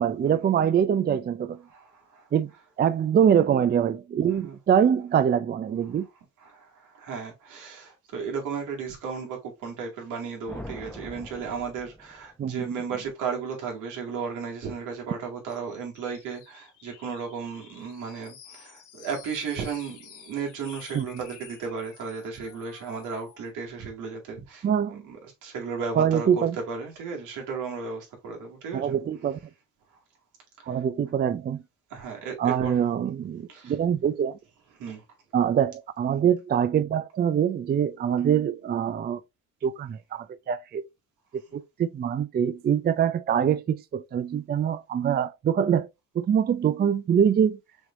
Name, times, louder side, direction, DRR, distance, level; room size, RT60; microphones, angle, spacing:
voice 1, 0.0-1.6 2.3-2.5 2.8-6.1 12.4-12.7 20.9-21.1 24.6-25.0 26.0-26.6 28.7-29.4 30.7-31.6 32.4-34.4 35.3-39.2 39.6-40.8 41.3-45.9 46.2-47.6, right 8 dB, 35° right, 0.4 m, -24 dB
voice 2, 1.7-2.3 4.4-4.6 6.4-28.9 31.9-32.8 33.5-33.7 34.8-35.0, right 5 dB, 85° right, 2.1 m, -35 dB
sound 1, 10.5-12.6, left 1 dB, 5° left, 0.8 m, -43 dB
sound 2, 15.5-23.5, left 9 dB, 85° left, 1.5 m, -51 dB
6.2 x 3.3 x 2.5 m
cardioid pair, 90°, 30 cm